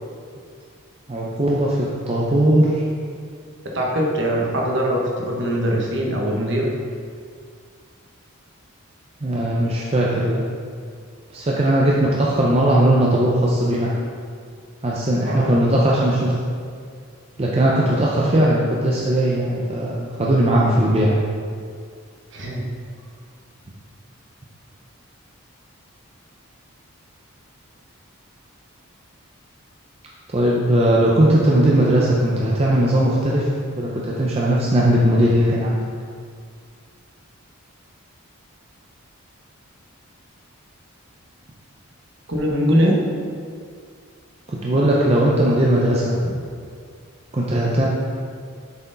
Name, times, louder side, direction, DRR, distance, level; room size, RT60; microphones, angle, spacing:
voice 1, 1.1-2.8 9.2-10.4 11.3-13.9 14.8-16.4 17.4-21.2 30.3-35.8 44.5-46.1 47.3-47.9, right 1 dB, 30° right, -4 dB, 0.5 m, -18 dB
voice 2, 3.6-6.7 15.3-15.6 22.3-22.6 42.3-43.0 46.2-46.3, equal, 55° right, -2 dB, 1.1 m, -22 dB
6.9 x 4.5 x 3.9 m, 2.1 s
head